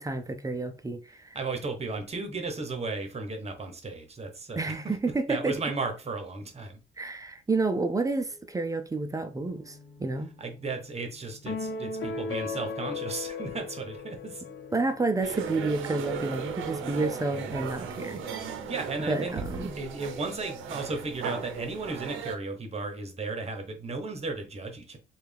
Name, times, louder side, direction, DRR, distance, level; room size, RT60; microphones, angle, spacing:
voice 1, 0.0-1.4 4.6-5.5 7.0-10.3 14.7-18.2 19.0-19.7, right 3 dB, 15° right, 0.5 m, -30 dB
voice 2, 1.3-5.0 5.3-6.8 10.4-14.4 18.7-19.3 19.8-25.0, right 3 dB, 30° right, 1.0 m, -35 dB
sound 1, 8.3-20.6, left 2 dB, ahead, 1.5 m, -53 dB
sound 2, 11.4-14.9, left 4 dB, 70° left, 0.8 m, -36 dB
sound 3, 15.2-22.4, right 6 dB, 85° right, 0.6 m, -37 dB
3.2 x 2.3 x 3.4 m
cardioid pair, 90°, 20 cm